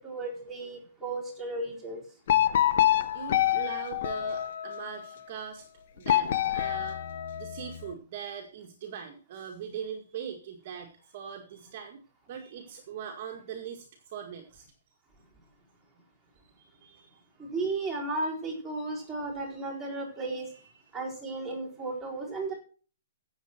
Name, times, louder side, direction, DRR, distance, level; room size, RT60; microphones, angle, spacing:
voice 1, 0.0-2.0 17.4-20.5 20.9-22.5, right 2 dB, ahead, -6 dB, 4.3 m, -34 dB
sound 1, 2.3-5.0 6.1-7.8, left 12 dB, 45° left, 0.9 m, -26 dB
voice 2, 3.1-5.7 5.9-7.0 7.4-12.0 12.3-14.7 16.6-17.5 20.2-20.9, right 8 dB, 35° right, 3 dB, 1.8 m, -41 dB
16.0 x 7.3 x 4.4 m, 0.38 s
hypercardioid pair, 175°, 0 cm